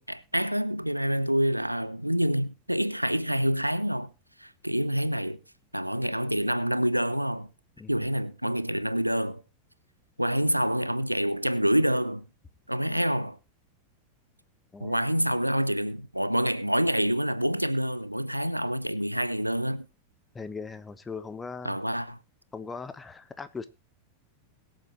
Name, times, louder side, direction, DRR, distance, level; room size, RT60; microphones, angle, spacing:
voice 1, 0.0-4.1 4.4-5.4 5.7-7.5 7.9-9.4 10.2-12.2 12.7-13.4 14.8-19.9 21.6-22.2, equal, 90° right, 0.7 m, -27 dB
voice 2, 20.3-21.8 22.5-23.7, left 4 dB, 15° left, 1.1 m, -39 dB
22.0 x 7.5 x 3.1 m
figure-of-eight pair, 90°, 0 cm